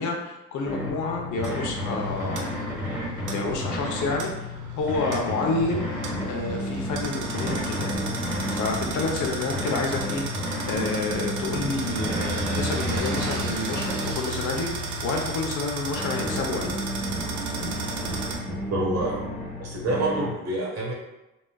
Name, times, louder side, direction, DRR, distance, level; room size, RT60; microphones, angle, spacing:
voice 1, 0.0-2.5 3.2-5.9 6.2-7.9 8.5-10.2 10.7-14.7 15.0-16.8, left 3 dB, 80° left, 1 dB, 0.7 m, -29 dB
sound 1, 0.6-20.3, left 1 dB, 5° right, 1.1 m, -32 dB
sound 2, 1.4-18.4, right 3 dB, 80° right, 0.6 m, -34 dB
voice 2, 18.5-19.2 19.6-20.9, right 2 dB, 55° right, -3 dB, 1.1 m, -27 dB
3.9 x 2.4 x 2.2 m, 1.0 s
cardioid pair, 90°, 30 cm